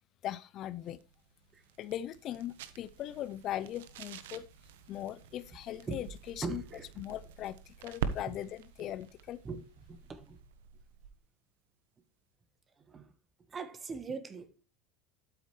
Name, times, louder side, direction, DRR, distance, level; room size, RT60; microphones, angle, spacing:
voice 1, 0.2-1.0 1.8-4.5 4.9-6.6 7.0-9.4, left 12 dB, 45° left, 0.5 m, -39 dB
sound 1, 0.6-11.3, right 7 dB, 85° right, 1.1 m, -45 dB
voice 2, 6.4-6.9 8.3-8.4 9.4-10.4 12.9-13.1 13.5-14.6, right 4 dB, 20° right, 1.4 m, -41 dB
12.0 x 8.7 x 3.2 m
supercardioid pair, 130°, 0 cm